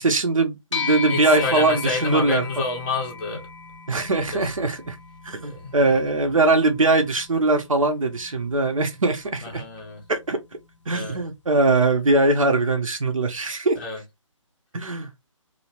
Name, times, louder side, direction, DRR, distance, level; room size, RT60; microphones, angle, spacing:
voice 1, 0.0-2.4 3.9-5.0 5.2-9.6 10.1-10.4 10.9-13.8 14.7-15.1, right 2 dB, 80° right, 0.7 m, -21 dB
sound 1, 0.7-10.3, left 6 dB, 65° left, 0.5 m, -36 dB
voice 2, 1.1-3.5 4.3-4.5 5.4-5.9 9.4-10.0 10.9-11.2 13.7-14.0, left 3 dB, 15° left, 0.5 m, -29 dB
2.8 x 2.0 x 2.8 m
figure-of-eight pair, 150°, 17 cm